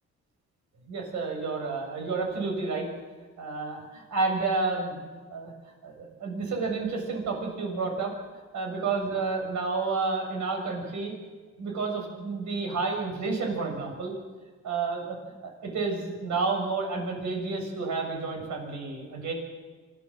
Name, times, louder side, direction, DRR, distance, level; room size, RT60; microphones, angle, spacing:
voice 1, 0.9-2.9 3.4-5.0 5.3-8.1 8.5-11.1 11.6-14.1 14.6-15.2 15.4-19.3, right 4 dB, 70° right, 2 dB, 7.1 m, -30 dB
26.0 x 16.0 x 7.7 m, 1.3 s
cardioid pair, 90°, 30 cm